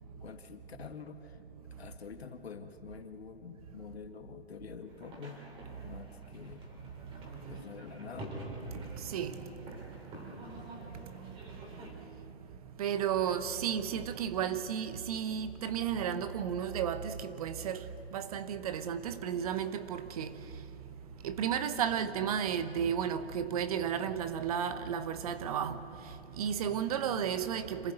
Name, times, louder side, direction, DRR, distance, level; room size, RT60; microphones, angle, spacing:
voice 1, 0.2-1.4 1.8-5.4 5.8-6.6 7.5-8.3, left 6 dB, 70° left, 1.9 m, -46 dB
sound 1, 4.9-11.9, right 1 dB, 15° right, 3.2 m, -47 dB
voice 2, 9.0-9.4 12.8-20.4 21.2-25.8 26.4-27.9, right 8 dB, 35° right, 0.9 m, -33 dB
26.5 x 15.0 x 7.9 m
hypercardioid pair, 140°, 33 cm